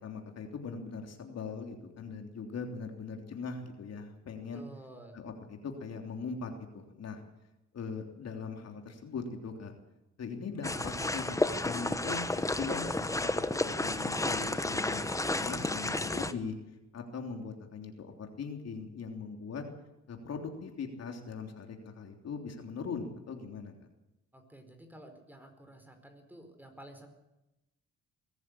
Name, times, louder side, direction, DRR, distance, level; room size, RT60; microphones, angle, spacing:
voice 1, 0.0-4.6 5.1-7.2 7.7-9.7 10.2-13.3 13.6-16.6 16.9-19.6 20.1-23.7, left 5 dB, 55° left, 3 dB, 3.3 m, -40 dB
voice 2, 4.5-5.2 24.3-27.1, right 1 dB, 5° right, 6 dB, 4.6 m, -51 dB
sound 1, 10.6-16.3, left 2 dB, 10° left, 1.2 m, -32 dB
22.0 x 14.0 x 8.6 m, 0.95 s
cardioid pair, 90°, 30 cm